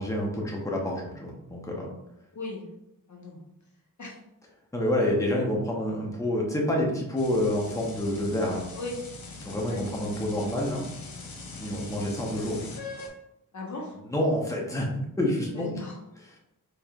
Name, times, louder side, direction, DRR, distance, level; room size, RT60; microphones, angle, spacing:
voice 1, 0.0-1.9 4.7-8.6 9.4-10.8 11.5-12.8 14.1-14.9 15.2-15.7, left 1 dB, 10° left, -2 dB, 0.9 m, -28 dB
voice 2, 2.3-2.6 3.1-3.4 4.0-4.2 8.8-9.0 9.7-9.9 13.5-14.0 15.5-16.0, left 2 dB, 55° left, -2 dB, 1.0 m, -37 dB
sound 1, 7.2-13.1, left 3 dB, 80° left, 0.8 m, -42 dB
4.3 x 3.3 x 2.4 m, 0.85 s
wide cardioid pair, 85°, 35 cm